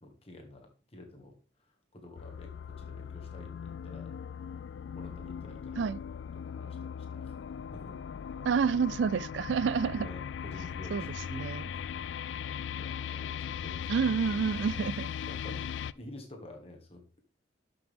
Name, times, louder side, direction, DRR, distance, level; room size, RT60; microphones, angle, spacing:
voice 1, 0.0-4.1 4.9-5.8 6.3-7.4 7.7-8.0 9.8-11.9 12.7-13.9 14.4-14.6 15.3-17.2, left 1 dB, 35° left, 1.9 m, -50 dB
sound 1, 2.2-15.9, left 8 dB, 85° left, 0.3 m, -39 dB
voice 2, 8.4-10.1 10.9-11.0 11.3-11.7 13.9-15.1, right 6 dB, 85° right, 0.3 m, -29 dB
12.0 x 6.0 x 3.6 m
head